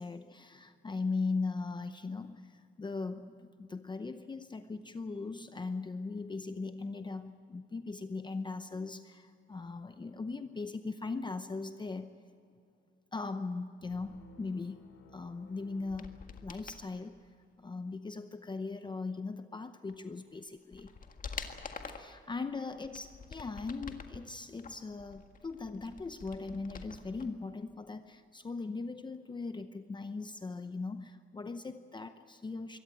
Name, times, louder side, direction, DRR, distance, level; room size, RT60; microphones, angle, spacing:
voice 1, 0.0-12.2 13.1-16.1 16.4-17.3 17.6-20.9 21.9-32.8, left 3 dB, 20° left, 9 dB, 0.7 m, -39 dB
sound 1, 13.8-17.2, left 3 dB, 85° left, 3.1 m, -60 dB
sound 2, 15.8-16.8 19.9-20.0 20.5-22.1 22.7-24.2 24.6-27.3 27.5-27.6, left 5 dB, 40° left, 1.8 m, -46 dB
23.5 x 17.5 x 8.9 m, 2.5 s
cardioid pair, 135°, 21 cm